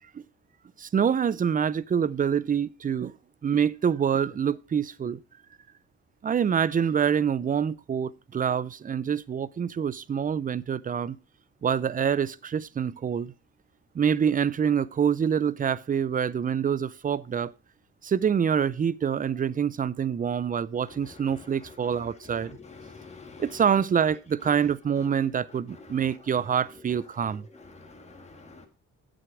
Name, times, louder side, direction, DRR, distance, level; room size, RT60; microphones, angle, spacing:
voice 1, 0.8-3.1 3.4-5.2 6.2-11.2 11.6-13.3 13.9-17.5 18.0-22.6 23.4-27.5, right 7 dB, 30° right, 0.5 m, -26 dB
voice 2, 22.3-23.4 25.8-25.9 27.7-28.7, left 4 dB, 20° left, 1.7 m, -47 dB
7.9 x 7.8 x 4.9 m
cardioid pair, 90°, 30 cm